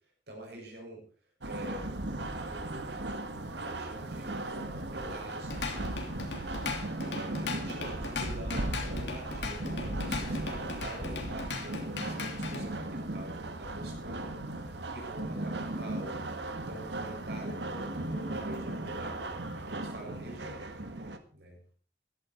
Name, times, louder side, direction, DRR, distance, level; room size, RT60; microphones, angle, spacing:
voice 1, 0.3-1.0 1.4-2.0 2.4-3.1 3.5-5.7 7.1-16.2 16.7-20.7 21.3-21.6, right 1 dB, 70° right, 0 dB, 7.3 m, -46 dB
sound 1, 1.4-21.2, right 2 dB, 85° right, 1.7 m, -37 dB
Drum kit / Drum, 5.3-12.7, left 4 dB, 85° left, 3.1 m, -38 dB
16.0 x 12.5 x 4.7 m, 0.41 s
head